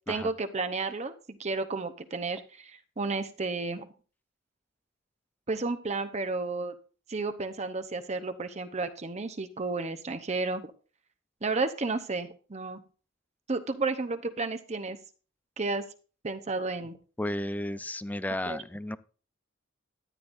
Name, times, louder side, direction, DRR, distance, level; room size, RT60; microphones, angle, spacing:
voice 1, 0.1-3.9 5.5-6.7 7.1-10.6 11.4-12.8 13.5-15.0 15.6-15.8 16.2-17.0 18.5-18.6, right 3 dB, 35° right, 9 dB, 0.8 m, -32 dB
voice 2, 17.2-19.0, left 1 dB, 10° left, 15 dB, 0.4 m, -33 dB
13.0 x 9.8 x 2.6 m, 0.37 s
head